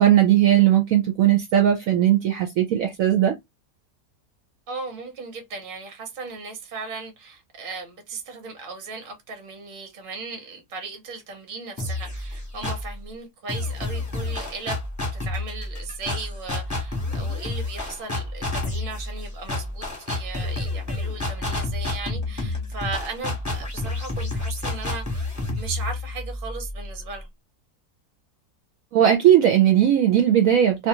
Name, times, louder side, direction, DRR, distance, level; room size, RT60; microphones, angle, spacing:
voice 1, 0.0-3.3 28.9-30.9, right 11 dB, 70° right, 0.9 m, -18 dB
voice 2, 4.7-14.8 15.1-27.3, right 4 dB, 40° right, 0.9 m, -37 dB
sound 1, 11.8-13.0 13.5-27.2, left 2 dB, 15° left, 0.7 m, -30 dB
2.6 x 2.3 x 2.8 m
omnidirectional pair, 1.7 m